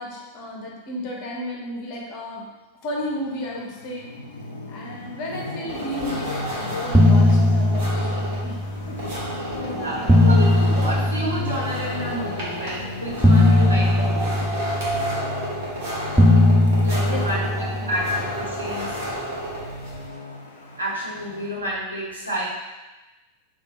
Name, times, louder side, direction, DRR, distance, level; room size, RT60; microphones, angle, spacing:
voice 1, 0.0-2.4 2.8-4.1 4.7-8.6 8.9-9.1 9.3-10.2 17.1-18.1, left 1 dB, 45° left, -2 dB, 0.9 m, -33 dB
Traffic noise roadway noise, 3.0-21.5, left 2 dB, 70° left, 0.5 m, -36 dB
voice 2, 4.6-4.9 9.7-14.3 16.8-18.1 18.3-19.0 20.8-22.5, right 1 dB, 80° right, -6 dB, 1.0 m, -30 dB
sound 1, 5.7-20.1, right 1 dB, 50° right, 1.1 m, -33 dB
sound 2, 6.3-6.5 6.8-9.1 9.8-12.2 13.2-15.7 16.2-18.7, left 1 dB, ahead, 0.4 m, -19 dB
3.5 x 2.4 x 3.7 m, 1.1 s
figure-of-eight pair, 90°, 0 cm